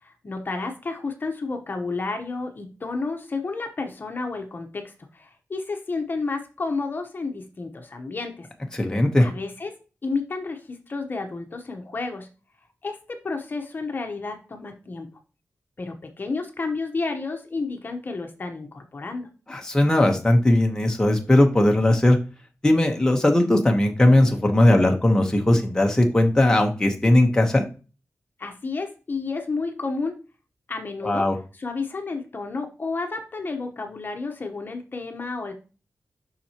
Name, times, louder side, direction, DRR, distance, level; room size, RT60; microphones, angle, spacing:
voice 1, 0.0-8.5 9.2-9.7 10.0-12.3 12.8-15.1 15.8-19.3 28.4-30.2 30.7-31.3 31.5-35.5, left 3 dB, 40° left, 4 dB, 1.0 m, -31 dB
voice 2, 8.7-9.3 19.5-22.2 22.6-27.6 31.0-31.3, left 1 dB, 15° left, 2 dB, 1.0 m, -18 dB
7.4 x 5.7 x 2.9 m, 0.33 s
wide cardioid pair, 160°, 5 cm